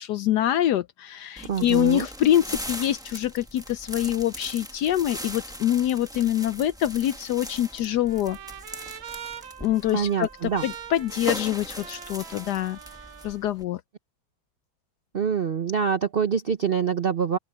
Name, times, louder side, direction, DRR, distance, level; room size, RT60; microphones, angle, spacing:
voice 1, 0.0-8.4 9.6-12.8 13.2-13.8, left 12 dB, 70° left, 1.0 m, -25 dB
sound 1, 1.4-13.6, equal, 5° right, 0.8 m, -39 dB
voice 2, 1.5-2.1 9.9-10.6 15.1-17.4, right 7 dB, 60° right, 0.6 m, -25 dB
Trumpet, 7.1-13.4, right 9 dB, 85° right, 2.1 m, -43 dB
open air
omnidirectional pair, 2.1 m